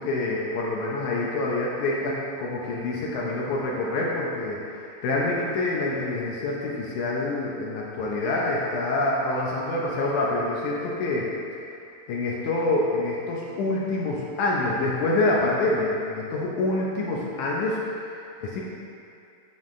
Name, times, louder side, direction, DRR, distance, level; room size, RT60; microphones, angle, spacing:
voice 1, 0.0-11.3 12.1-18.6, left 2 dB, 75° left, -4 dB, 1.9 m, -26 dB
9.0 x 5.6 x 3.2 m, 2.5 s
omnidirectional pair, 4.3 m